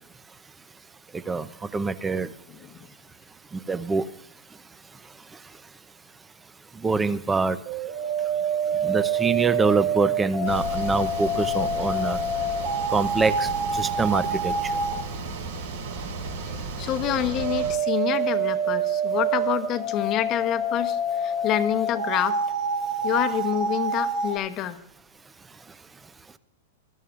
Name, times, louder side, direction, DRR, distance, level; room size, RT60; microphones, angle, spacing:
voice 1, 1.7-2.3 3.7-4.1 6.8-7.6 8.8-12.2 12.9-14.5, right 4 dB, 10° right, 15 dB, 0.6 m, -25 dB
sound 1, 7.7-15.0 17.0-24.3, right 3 dB, 45° right, 2.7 m, -27 dB
sound 2, 10.4-17.7, right 3 dB, 80° right, 6.4 m, -34 dB
voice 2, 16.8-22.4 23.0-24.8, left 11 dB, 30° left, 8 dB, 1.0 m, -27 dB
22.5 x 13.0 x 2.5 m, 0.67 s
supercardioid pair, 160°, 0 cm